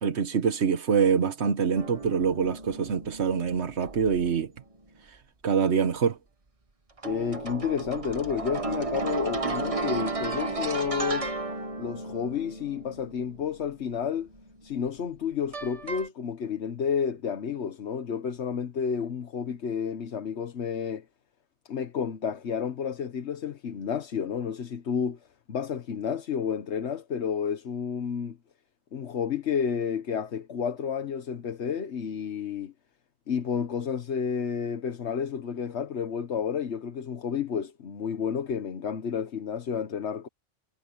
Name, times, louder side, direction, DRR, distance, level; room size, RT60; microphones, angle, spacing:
voice 1, 0.0-4.5 5.4-6.2, right 6 dB, 60° right, 1.4 m, -25 dB
sound 1, 1.8-4.4 7.0-14.9 15.5-16.1, right 3 dB, 30° right, 1.3 m, -34 dB
voice 2, 7.0-11.3 11.8-14.3 14.6-21.0 21.6-25.2 25.5-28.4 28.9-32.7 33.3-40.3, left 7 dB, 65° left, 1.3 m, -31 dB
omnidirectional pair, 1.3 m